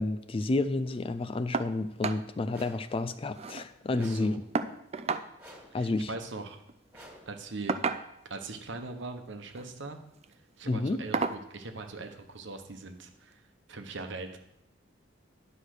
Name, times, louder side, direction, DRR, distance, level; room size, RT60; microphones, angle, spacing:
voice 1, 0.0-4.4 5.7-6.1 10.7-11.0, left 2 dB, 30° left, 12 dB, 0.4 m, -30 dB
sound 1, 1.5-1.7 2.0-2.2 2.6-2.7 3.0-3.7 4.5-5.3 6.5-6.7 7.7-8.4 9.4-9.7 10.2-10.3 11.1-11.5 12.7-12.8 13.3-13.4, right 4 dB, 35° right, 0.4 m, -32 dB
sound 2, 2.5-3.0 3.9-4.4 5.4-5.9 6.9-7.4, equal, 10° right, 2.1 m, -51 dB
voice 2, 3.9-4.4 5.7-6.6 6.9-7.7 8.3-10.0 10.6-13.4 13.7-14.4, right 3 dB, 65° right, 6 dB, 1.0 m, -41 dB
10.0 x 4.9 x 6.4 m, 0.80 s
head